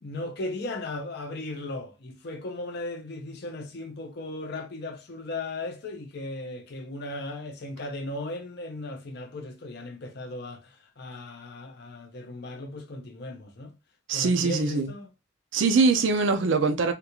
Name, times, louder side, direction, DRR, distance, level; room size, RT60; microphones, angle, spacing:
voice 1, 0.0-13.7 14.1-15.1, left 2 dB, 60° left, 0.6 m, -37 dB
voice 2, 14.1-14.9 15.5-16.9, right 4 dB, 80° right, 0.5 m, -22 dB
3.6 x 2.4 x 2.9 m
head